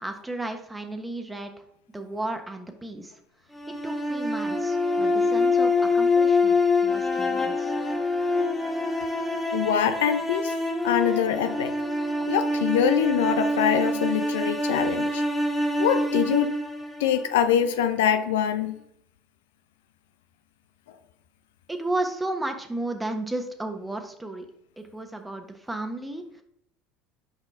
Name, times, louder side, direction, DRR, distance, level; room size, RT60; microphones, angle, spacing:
voice 1, 0.0-1.5 1.9-3.1 3.8-7.7 21.7-24.5 24.8-26.2, right 2 dB, 10° right, 5 dB, 1.1 m, -33 dB
sound 1, 3.5-17.7, left 2 dB, 5° left, 1.7 m, -25 dB
voice 2, 9.5-10.5 10.8-11.7 12.3-15.2 15.8-16.5 17.0-18.8, left 9 dB, 85° left, 10 dB, 0.5 m, -24 dB
6.2 x 5.2 x 3.6 m, 0.75 s
hypercardioid pair, 80°, 0 cm